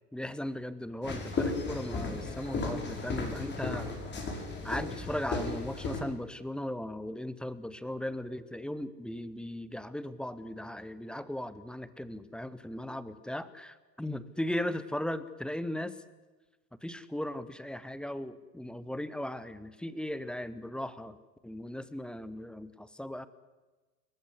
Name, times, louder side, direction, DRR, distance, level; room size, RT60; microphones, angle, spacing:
voice 1, 0.1-4.3 4.6-16.0 16.8-21.2 21.4-23.3, left 1 dB, ahead, 16 dB, 0.9 m, -37 dB
sound 1, 1.0-6.0, left 3 dB, 20° left, 5.4 m, -35 dB
29.0 x 14.5 x 9.8 m, 1.2 s
figure-of-eight pair, 90°, 49 cm